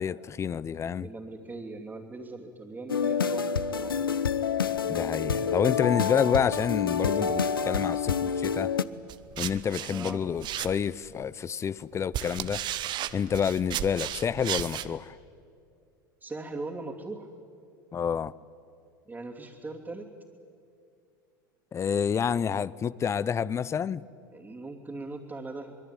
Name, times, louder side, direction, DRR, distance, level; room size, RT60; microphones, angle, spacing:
voice 1, 0.0-1.1 4.9-8.7 9.4-12.6 13.1-15.2 17.9-18.3 21.7-24.0, left 7 dB, 25° left, 0.7 m, -28 dB
voice 2, 1.0-3.9 9.9-10.2 16.2-17.3 19.1-20.1 24.3-25.8, right 3 dB, 15° right, 3.0 m, -40 dB
sound 1, 2.9-8.8, left 6 dB, 90° left, 0.8 m, -28 dB
sound 2, 9.1-11.1 11.8-14.9, right 12 dB, 40° right, 1.1 m, -34 dB
25.5 x 22.0 x 9.2 m
hypercardioid pair, 85°, 11 cm